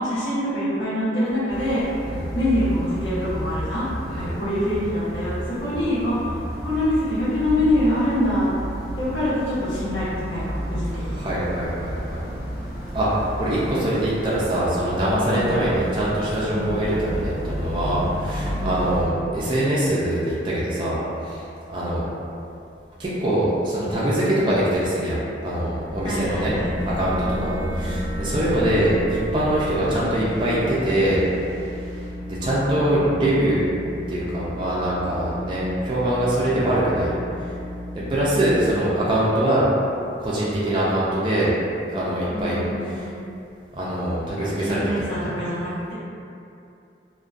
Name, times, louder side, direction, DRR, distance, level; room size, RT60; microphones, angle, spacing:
voice 1, 0.0-1.8 2.3-3.9 4.2-6.4 6.6-8.5 9.0-11.2 12.3-12.4 15.3-15.6 16.5-16.8 18.5-18.8 26.0-27.0 27.3-28.6 32.4-33.5 42.3-43.0 44.4-45.9, left 1 dB, 80° left, -13 dB, 0.8 m, -26 dB
sound 1, 1.5-19.0, equal, 5° left, 0.9 m, -32 dB
voice 2, 11.1-12.2 12.9-21.4 21.7-22.1 23.0-26.6 26.9-31.2 32.3-33.6 34.1-37.1 37.9-39.6 40.2-41.5 41.9-42.6 42.9-43.0 43.7-44.8 45.2-45.3, right 1 dB, 25° right, -8 dB, 0.3 m, -23 dB
sound 2, 25.7-32.3, equal, 35° left, 0.7 m, -33 dB
sound 3, 25.9-38.8, left 1 dB, 90° right, 0.5 m, -35 dB
2.5 x 2.1 x 2.3 m, 2.6 s
head